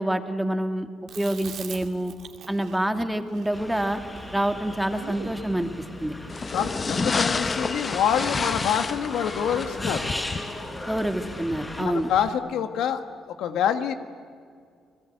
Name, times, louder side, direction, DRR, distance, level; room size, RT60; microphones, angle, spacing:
voice 1, 0.0-2.1 2.5-4.0 4.3-5.7 6.0-6.2 10.9-12.1, right 1 dB, 5° right, 7 dB, 1.9 m, -27 dB
Chewing mastication, 1.1-5.5, right 8 dB, 70° right, 2.4 m, -42 dB
sound 1, 3.5-11.8, left 1 dB, 15° left, 5.2 m, -37 dB
sound 2, 6.3-12.3, left 4 dB, 35° left, 1.1 m, -30 dB
voice 2, 6.5-10.1 11.8-13.0 13.4-13.9, left 8 dB, 85° left, 9 dB, 1.5 m, -26 dB
30.0 x 20.5 x 9.2 m, 2.2 s
cardioid pair, 90°, 0 cm